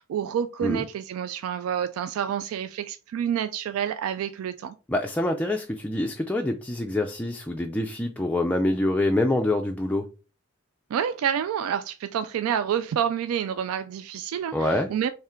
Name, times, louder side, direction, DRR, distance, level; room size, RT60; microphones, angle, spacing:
voice 1, 0.0-4.7 10.9-15.1, right 8 dB, 75° right, 0.3 m, -28 dB
voice 2, 4.9-10.1 14.5-14.9, left 1 dB, 5° left, 0.3 m, -25 dB
3.6 x 3.2 x 4.3 m
head